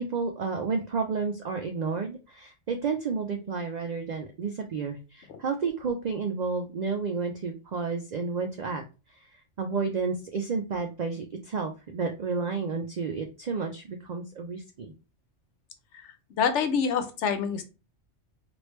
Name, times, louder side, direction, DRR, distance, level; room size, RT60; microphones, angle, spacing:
voice 1, 0.0-8.8 9.6-14.9, right 5 dB, 70° right, 4 dB, 0.4 m, -31 dB
voice 2, 16.4-17.6, left 6 dB, 75° left, 8 dB, 0.9 m, -26 dB
3.2 x 2.5 x 3.0 m, 0.31 s
omnidirectional pair, 1.3 m